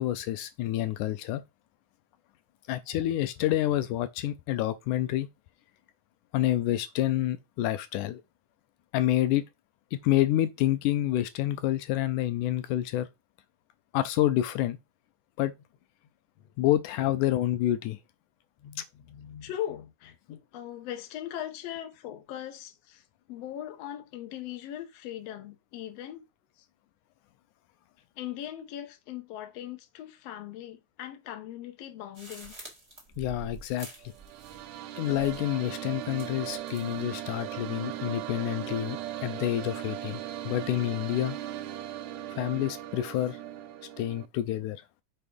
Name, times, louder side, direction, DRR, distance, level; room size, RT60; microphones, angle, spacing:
voice 1, 0.0-1.4 2.7-5.3 6.3-8.2 8.9-9.4 9.9-13.1 13.9-14.8 15.4-15.5 16.6-18.0 33.2-33.9 35.0-41.4 42.4-43.4 44.0-44.8, left 13 dB, 85° left, 2.0 m, -28 dB
voice 2, 18.6-23.0 23.3-26.2 28.2-32.6, left 11 dB, 65° left, 1.9 m, -40 dB
sound 1, 32.1-34.8 35.0-35.6 36.1-37.0, right 3 dB, 10° right, 1.8 m, -47 dB
sound 2, 34.0-44.3, right 13 dB, 80° right, 1.7 m, -38 dB
6.9 x 3.6 x 5.2 m
omnidirectional pair, 3.6 m